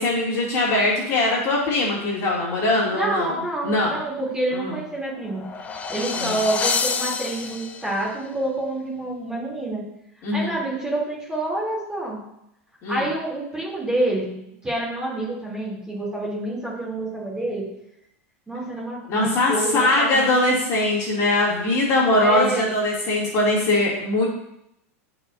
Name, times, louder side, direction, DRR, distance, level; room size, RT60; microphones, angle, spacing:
voice 1, 0.0-3.4 3.6-4.0 4.5-4.7 6.2-6.4 10.2-10.5 12.8-13.0 19.1-24.3, left 2 dB, 35° left, -5 dB, 2.3 m, -21 dB
voice 2, 2.9-5.4 5.9-9.8 10.3-12.2 12.9-17.7 18.5-20.2 22.2-22.7, right 1 dB, 10° right, -5 dB, 2.7 m, -27 dB
sound 1, 5.1-8.1, left 5 dB, 20° left, 0.5 m, -28 dB
11.0 x 5.0 x 2.5 m, 0.78 s
supercardioid pair, 135°, 8 cm